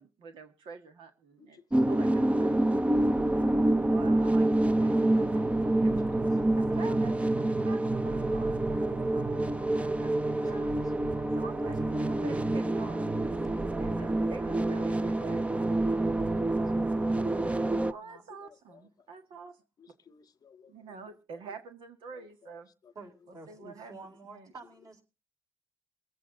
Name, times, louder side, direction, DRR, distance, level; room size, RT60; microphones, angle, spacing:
voice 1, 0.0-1.6 1.9-3.0 3.9-5.4 5.8-6.0 6.5-10.7 11.3-16.4 17.9-19.6 20.7-22.7 23.5-24.5, right 4 dB, 85° right, 1.7 m, -47 dB
sound 1, 1.7-17.9, right 1 dB, 15° right, 0.6 m, -27 dB
voice 2, 6.0-6.6 10.6-10.8 13.5-13.7 16.0-16.4 18.4-18.5 19.8-20.7 22.8-22.9, left 6 dB, 45° left, 0.8 m, -55 dB
voice 3, 8.9-9.2 16.1-16.6 17.7-18.2 22.9-25.0, right 3 dB, 45° right, 4.5 m, -50 dB
23.0 x 8.5 x 3.8 m
cardioid pair, 100°, 9 cm